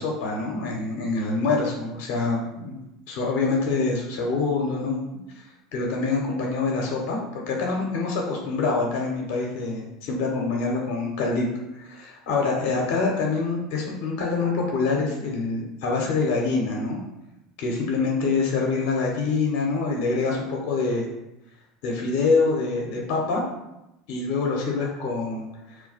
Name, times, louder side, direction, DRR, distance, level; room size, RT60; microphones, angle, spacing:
voice 1, 0.0-2.8 3.1-5.0 5.7-11.5 11.8-17.0 17.6-21.0 21.8-23.4 24.1-25.5, left 4 dB, 70° left, -1 dB, 0.6 m, -25 dB
2.3 x 2.2 x 3.9 m, 0.91 s
hypercardioid pair, 85°, 0 cm